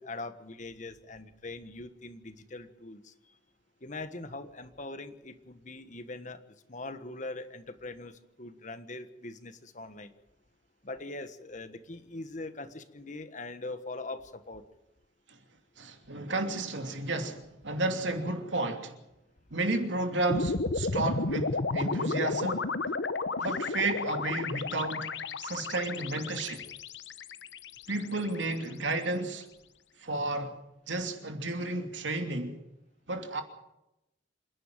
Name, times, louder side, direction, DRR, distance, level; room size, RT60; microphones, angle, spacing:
voice 1, 0.0-3.1 3.8-6.4 6.7-10.1 10.8-14.6, left 2 dB, 45° left, 1.5 m, -42 dB
voice 2, 15.8-18.9 19.5-22.7 23.4-25.1 25.4-26.6 27.9-29.5 30.0-30.6 30.9-32.6 33.1-33.4, right 2 dB, 90° right, 2.9 m, -32 dB
sound 1, 20.3-28.6, left 3 dB, 80° left, 1.0 m, -33 dB
27.5 x 11.0 x 9.2 m
head